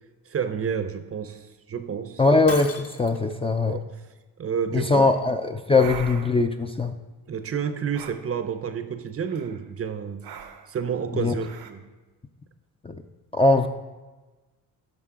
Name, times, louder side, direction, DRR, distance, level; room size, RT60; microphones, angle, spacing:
voice 1, 0.3-1.4 1.7-2.2 3.6-3.8 4.4-5.1 5.8-5.9 7.3-10.3 10.7-11.8, right 7 dB, 40° right, 10 dB, 0.7 m, -30 dB
voice 2, 2.2-3.8 4.7-6.9 11.1-11.3 12.8-13.0 13.3-13.7, left 3 dB, 15° left, 5 dB, 0.5 m, -21 dB
Shatter, 2.5-3.3, left 4 dB, 35° left, 0.9 m, -37 dB
sound 1, 5.7-6.5 7.9-8.2 9.2-9.6 10.2-10.7 11.3-11.7, right 8 dB, 75° right, 0.9 m, -40 dB
13.0 x 5.2 x 3.8 m, 1.2 s
cardioid pair, 90°, 37 cm